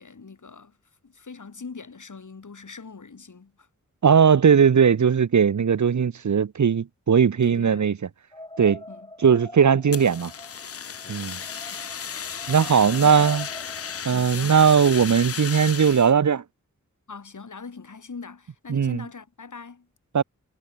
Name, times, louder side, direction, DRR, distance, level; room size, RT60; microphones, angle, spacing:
voice 1, 0.0-3.7 7.1-7.9 8.9-9.1 12.7-13.2 14.0-14.6 17.1-19.9, left 4 dB, 65° left, 6.7 m, -42 dB
voice 2, 4.0-7.9 8.6-8.8 9.2-10.3 11.1-11.4 12.5-13.5 14.0-16.4 18.7-19.0 20.1-20.2, right 7 dB, 60° right, 1.0 m, -19 dB
sound 1, 8.3-14.0, left 1 dB, 15° left, 2.9 m, -44 dB
Fire, 9.9-16.1, left 7 dB, 45° left, 0.6 m, -34 dB
cardioid pair, 50°, 32 cm